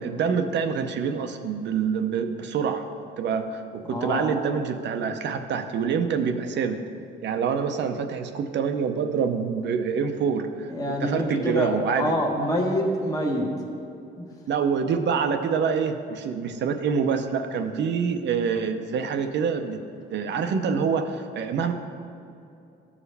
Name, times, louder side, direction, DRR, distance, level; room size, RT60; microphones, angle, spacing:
voice 1, 0.0-2.9 3.2-6.8 7.2-12.1 14.5-19.8 20.1-21.7, right 6 dB, 65° right, 7 dB, 0.6 m, -26 dB
voice 2, 3.9-4.3 10.7-13.5 14.2-14.3, equal, 20° left, -1 dB, 1.1 m, -26 dB
13.5 x 4.8 x 3.3 m, 2.7 s
cardioid pair, 90°, 20 cm